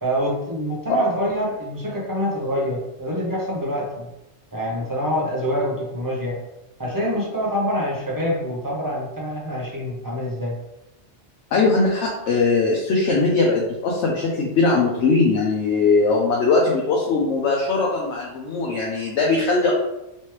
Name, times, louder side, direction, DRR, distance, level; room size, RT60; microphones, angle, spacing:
voice 1, 0.0-4.1 4.5-6.4 6.8-10.6, equal, 20° right, -4 dB, 0.8 m, -25 dB
voice 2, 11.5-19.7, left 3 dB, 80° left, -2 dB, 0.9 m, -20 dB
3.2 x 3.0 x 3.1 m, 0.91 s
omnidirectional pair, 1.1 m